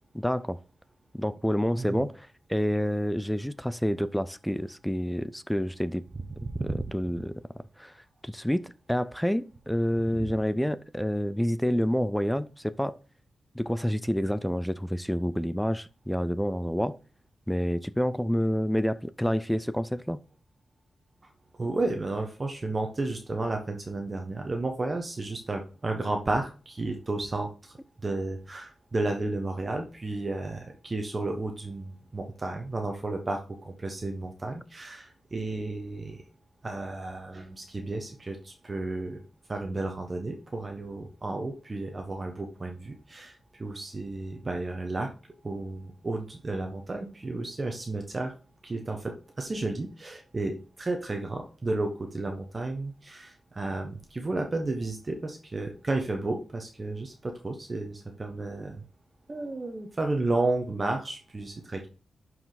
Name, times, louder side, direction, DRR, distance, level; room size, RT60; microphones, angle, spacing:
voice 1, 0.1-0.6 1.1-2.1 2.5-6.0 6.9-7.4 7.8-7.9 8.2-13.0 13.5-17.0 17.5-20.2, equal, 5° left, 0.5 m, -28 dB
voice 2, 6.4-6.9 10.2-10.3 21.6-27.7 28.0-36.2 36.6-39.2 39.5-45.1 45.4-48.3 48.6-58.8 59.3-61.9, right 2 dB, 30° right, 1.1 m, -32 dB
11.5 x 4.8 x 4.0 m
wide cardioid pair, 125°, 0 cm